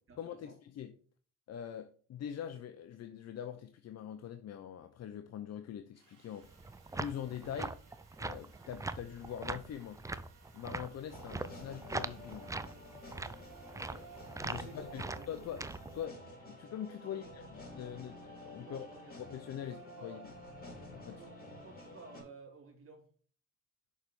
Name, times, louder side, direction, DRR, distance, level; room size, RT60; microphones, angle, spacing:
voice 1, 0.2-0.9 1.5-6.5 6.9-7.8 8.2-10.0 10.5-12.5 14.4-15.7 15.9-18.9 19.2-20.3 20.9-21.2, left 9 dB, 60° left, 0.7 m, -43 dB
Sawing, 5.9-17.0, right 5 dB, 80° right, 2.8 m, -67 dB
sound 1, 6.4-16.0, right 3 dB, 10° right, 0.4 m, -42 dB
sound 2, 11.1-22.2, left 1 dB, 30° left, 4.3 m, -51 dB
voice 2, 13.7-14.1 14.4-15.5 17.0-17.3 18.6-19.2 19.7-20.2 21.1-23.1, right 3 dB, 45° right, 2.7 m, -54 dB
6.4 x 4.7 x 5.4 m
cardioid pair, 90°, 30 cm